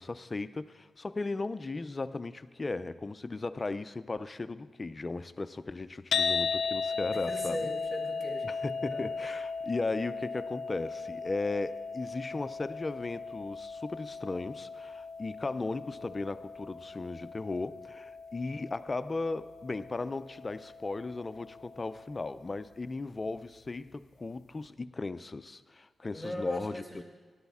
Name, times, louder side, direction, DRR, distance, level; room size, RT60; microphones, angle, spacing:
voice 1, 0.0-7.7 8.4-27.0, left 3 dB, 25° left, 13 dB, 0.4 m, -36 dB
sound 1, 6.1-22.3, left 5 dB, 85° left, 0.5 m, -37 dB
voice 2, 7.1-8.5 8.8-9.1 26.1-27.0, equal, 10° right, -1 dB, 2.2 m, -39 dB
17.5 x 11.0 x 3.6 m, 1.5 s
wide cardioid pair, 170°, 0 cm